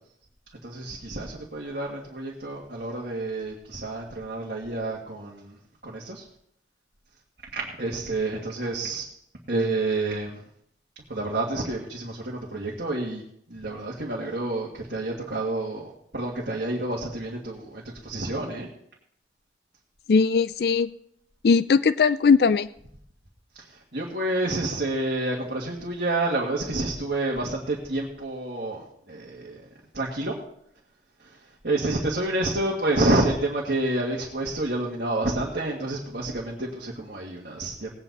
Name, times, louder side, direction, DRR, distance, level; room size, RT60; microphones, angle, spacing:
voice 1, 0.6-6.2 7.5-9.1 9.5-10.4 11.1-13.2 13.5-15.9 16.1-18.7 23.5-29.7 29.9-30.4 31.2-37.9, right 2 dB, 55° right, -4 dB, 2.0 m, -29 dB
voice 2, 20.1-20.9 21.4-22.7, left 5 dB, 55° left, 15 dB, 0.4 m, -19 dB
18.5 x 9.0 x 4.2 m, 0.71 s
head